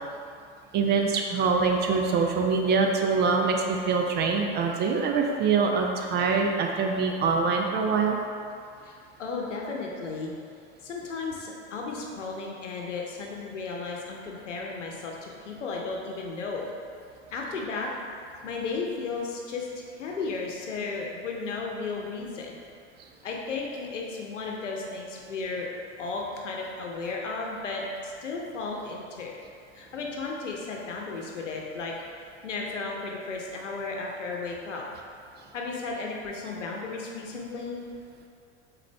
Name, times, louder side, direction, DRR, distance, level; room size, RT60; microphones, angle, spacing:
voice 1, 0.7-8.2 22.2-22.3, right 4 dB, 30° right, 2 dB, 0.5 m, -24 dB
voice 2, 8.8-10.3 10.8-16.6 17.3-17.9 18.4-22.6 23.2-25.7 26.0-29.3 29.7-31.9 32.4-34.8 35.5-37.8, left 4 dB, 90° left, -1 dB, 0.8 m, -34 dB
4.1 x 3.8 x 3.3 m, 2.4 s
hypercardioid pair, 95°, 35 cm